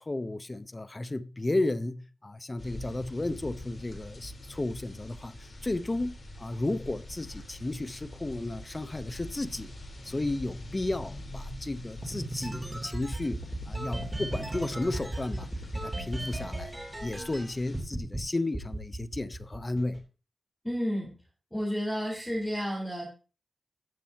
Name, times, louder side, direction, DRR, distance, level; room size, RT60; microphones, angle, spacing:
voice 1, 0.0-9.7 10.0-16.7 17.0-20.0, left 2 dB, 25° left, 0.7 m, -33 dB
sound 1, 2.6-17.8, left 1 dB, 50° left, 3.7 m, -44 dB
sound 2, 12.0-17.4 17.7-18.2 18.5-20.0, right 1 dB, 15° right, 2.9 m, -36 dB
voice 2, 20.6-21.1 21.5-23.0, equal, 10° left, 3.8 m, -31 dB
15.5 x 6.8 x 2.8 m
wide cardioid pair, 80°, 0 cm